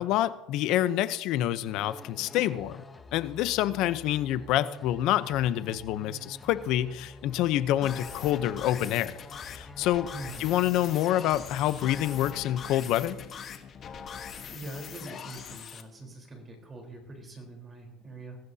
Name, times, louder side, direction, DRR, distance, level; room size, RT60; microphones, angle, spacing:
voice 1, 0.0-2.8 3.1-9.2 9.4-10.1 10.4-13.2, left 13 dB, 60° left, 13 dB, 0.8 m, -27 dB
sound 1, 1.7-11.7, left 3 dB, 15° left, 1.0 m, -48 dB
sound 2, 7.8-15.8, left 7 dB, 35° left, 1.4 m, -42 dB
voice 2, 10.1-10.5 14.5-18.4, right 2 dB, 20° right, 2 dB, 4.1 m, -43 dB
22.0 x 15.0 x 2.9 m, 1.0 s
cardioid pair, 130°, 0 cm